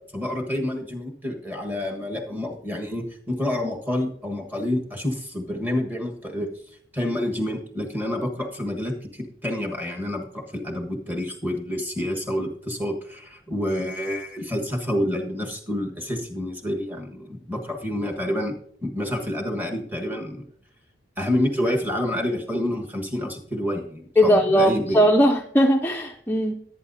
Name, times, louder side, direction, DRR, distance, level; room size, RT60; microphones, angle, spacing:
voice 1, 0.1-6.5 6.9-18.5 18.8-20.5 21.2-25.1, left 1 dB, 10° right, 1 dB, 1.4 m, -28 dB
voice 2, 24.2-26.5, equal, 10° left, 3 dB, 0.5 m, -19 dB
18.0 x 8.8 x 2.7 m, 0.62 s
head